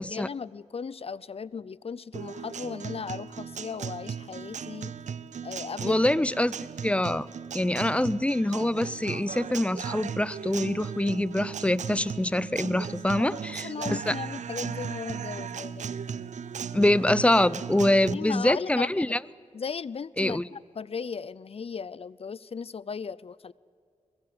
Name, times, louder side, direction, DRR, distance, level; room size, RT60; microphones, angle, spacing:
voice 1, 0.0-4.9 5.4-6.0 6.9-7.0 13.2-16.0 18.1-19.2 19.5-23.5, left 6 dB, 55° left, 21 dB, 0.6 m, -37 dB
Guitar, 2.1-18.1, right 7 dB, 85° right, 0.7 m, -37 dB
voice 2, 5.8-6.5 6.8-7.3 7.5-14.1 16.7-19.2 20.2-20.5, left 1 dB, 10° left, 20 dB, 0.6 m, -25 dB
23.0 x 20.5 x 8.7 m, 2.3 s
wide cardioid pair, 75°, 12 cm